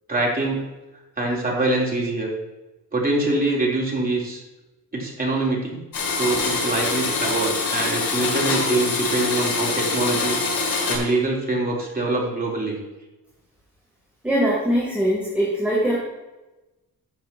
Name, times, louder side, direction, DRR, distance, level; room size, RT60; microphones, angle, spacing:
voice 1, 0.1-0.6 1.2-2.3 2.9-4.4 4.9-5.8 6.1-10.4 10.9-12.8, right 2 dB, 25° right, -3 dB, 3.7 m, -24 dB
Domestic sounds home sounds, 5.9-11.0, left 4 dB, 90° left, 3.9 m, -24 dB
voice 2, 14.2-15.9, equal, 5° right, -7 dB, 3.6 m, -21 dB
14.0 x 8.6 x 3.0 m, 1.1 s
cardioid pair, 110°, 34 cm